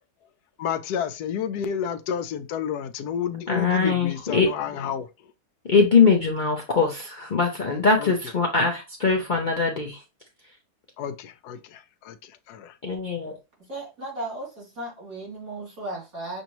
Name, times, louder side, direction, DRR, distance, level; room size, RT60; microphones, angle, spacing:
voice 1, 0.6-5.1 8.0-8.1 11.0-11.1 11.4-12.7, left 8 dB, 90° left, 1.2 m, -30 dB
voice 2, 3.5-4.5 5.6-10.0 12.8-13.4, left 4 dB, 45° left, 0.6 m, -22 dB
voice 3, 13.7-16.4, right 2 dB, 65° right, 3.3 m, -35 dB
6.6 x 2.7 x 2.9 m
omnidirectional pair, 1.6 m